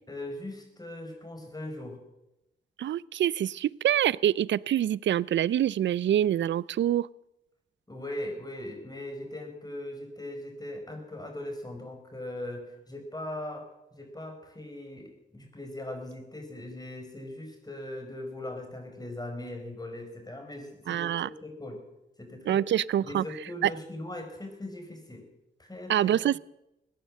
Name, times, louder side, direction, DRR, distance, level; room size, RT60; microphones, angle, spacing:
voice 1, 0.1-2.0 7.9-21.8 22.2-22.6 23.0-25.3 25.6-26.2, left 1 dB, 20° left, 4 dB, 4.9 m, -40 dB
voice 2, 2.8-7.1 20.9-21.3 22.5-23.2 23.6-23.7 25.9-26.4, right 11 dB, 60° right, 23 dB, 0.5 m, -25 dB
16.5 x 10.5 x 7.6 m, 0.90 s
supercardioid pair, 40°, 21 cm